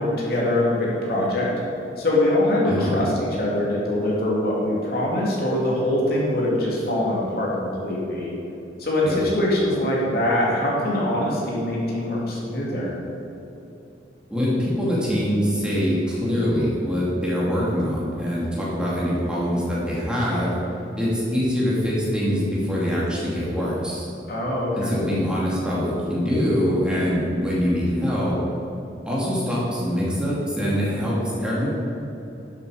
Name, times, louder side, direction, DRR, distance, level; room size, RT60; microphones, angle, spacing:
voice 1, 0.0-1.5 2.0-8.3 8.8-13.0 24.3-24.9, left 1 dB, 55° left, -4 dB, 2.6 m, -23 dB
voice 2, 2.6-2.9 9.1-9.2 14.3-20.5 21.0-24.1 24.8-28.4 29.1-31.7, equal, 5° right, -7 dB, 2.5 m, -24 dB
12.5 x 7.8 x 5.0 m, 3.0 s
head